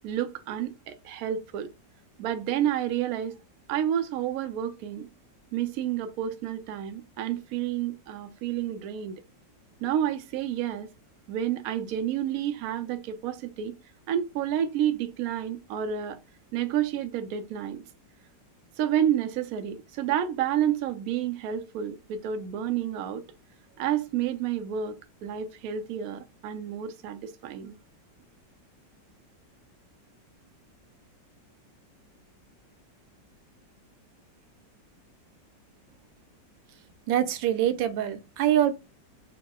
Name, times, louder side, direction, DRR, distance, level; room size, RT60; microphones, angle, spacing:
voice 1, 0.0-1.7 2.2-3.4 3.7-5.1 5.5-9.2 9.8-10.9 11.3-13.7 14.1-16.2 16.5-17.8 18.8-23.2 23.8-27.8, right 10 dB, 70° right, 0.9 m, -30 dB
voice 2, 37.1-38.7, right 11 dB, 85° right, 1.3 m, -24 dB
3.6 x 2.0 x 3.6 m
omnidirectional pair, 2.0 m